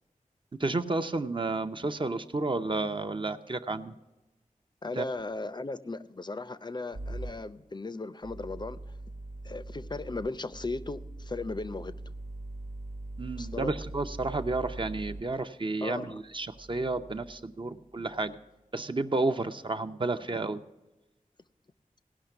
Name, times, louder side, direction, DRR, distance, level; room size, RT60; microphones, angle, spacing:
voice 1, 0.6-3.9 5.0-5.1 13.2-18.4 18.7-20.6, right 3 dB, 35° right, 0.6 m, -31 dB
voice 2, 4.8-8.8 9.4-12.0 13.4-13.7 15.8-16.2 17.8-17.9, left 3 dB, 30° left, 0.5 m, -37 dB
sound 1, 6.9-7.3 8.2-15.2 16.3-17.4 18.0-18.4, right 2 dB, 80° right, 0.7 m, -42 dB
17.5 x 5.8 x 5.8 m
wide cardioid pair, 75°, 14 cm